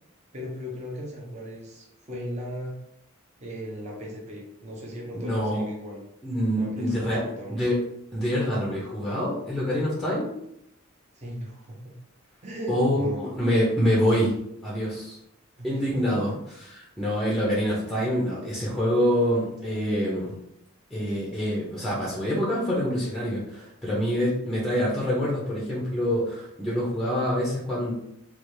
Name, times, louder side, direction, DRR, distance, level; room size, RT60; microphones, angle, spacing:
voice 1, 0.3-2.7 3.4-6.0 6.5-7.6 11.1-11.9 12.4-13.3 15.6-16.3, equal, 35° right, -3 dB, 0.8 m, -37 dB
voice 2, 5.1-5.7 6.2-7.2 7.5-7.8 8.1-10.3 12.7-14.3 14.6-15.2 15.6-16.3 16.8-20.3 20.9-27.9, equal, ahead, -5 dB, 0.6 m, -26 dB
3.3 x 2.4 x 3.1 m, 0.77 s
head